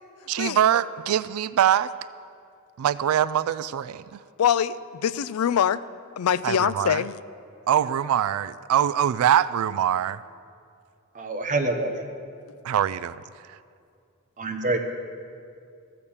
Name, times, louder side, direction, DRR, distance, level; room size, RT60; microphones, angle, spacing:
voice 1, 0.3-1.9 2.8-4.2 6.4-7.0 7.7-10.2 12.6-13.6, right 10 dB, 75° right, 18 dB, 0.3 m, -23 dB
voice 2, 4.4-5.8 6.2-7.1, left 8 dB, 90° left, 17 dB, 0.4 m, -23 dB
voice 3, 11.1-12.1 14.4-14.8, right 2 dB, 35° right, 5 dB, 1.0 m, -26 dB
14.5 x 6.8 x 7.1 m, 2.4 s
head